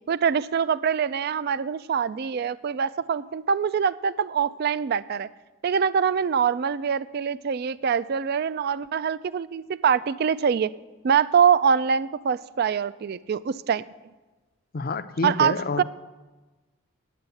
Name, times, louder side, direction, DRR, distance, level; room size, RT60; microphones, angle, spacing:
voice 1, 0.1-5.3 5.6-10.7 11.0-13.8 15.2-15.8, right 7 dB, 45° right, 17 dB, 0.3 m, -24 dB
voice 2, 14.7-15.8, left 3 dB, 45° left, 11 dB, 0.5 m, -28 dB
9.3 x 8.8 x 8.3 m, 1.2 s
head